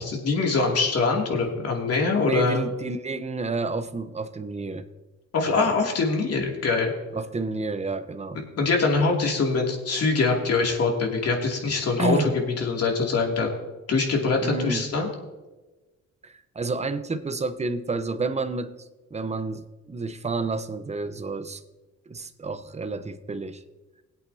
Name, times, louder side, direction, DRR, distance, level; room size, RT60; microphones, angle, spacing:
voice 1, 0.0-2.6 5.3-6.9 8.3-12.3 12.6-13.5 13.9-15.1, left 4 dB, 55° left, 0 dB, 2.6 m, -23 dB
voice 2, 2.3-4.8 5.5-5.7 7.1-8.4 12.0-12.4 14.4-14.9 16.2-21.6 22.1-23.6, right 3 dB, 20° right, 11 dB, 0.8 m, -30 dB
21.0 x 8.3 x 2.8 m, 1.2 s
cardioid pair, 90°, 30 cm